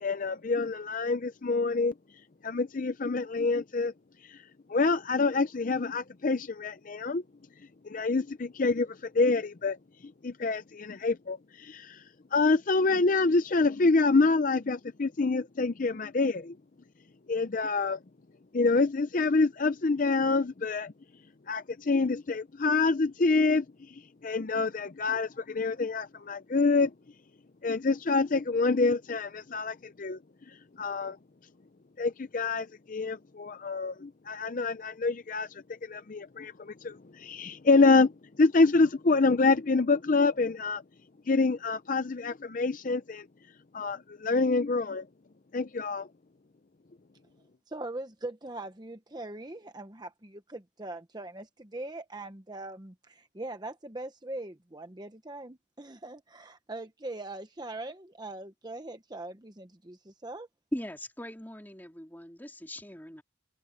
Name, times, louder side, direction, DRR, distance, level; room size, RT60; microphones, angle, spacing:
voice 1, 0.0-1.9 2.4-3.9 4.2-4.4 4.7-7.2 7.8-9.8 10.2-12.0 12.3-16.6 17.3-18.0 18.5-20.9 21.5-26.9 27.6-30.2 30.8-31.2 32.0-38.1 38.4-40.8 41.3-43.3 43.7-45.1 45.5-46.1, left 3 dB, 40° left, 0.5 m, -26 dB
voice 2, 47.7-60.5, right 2 dB, 20° right, 0.9 m, -41 dB
voice 3, 60.7-63.2, equal, 10° left, 3.1 m, -39 dB
head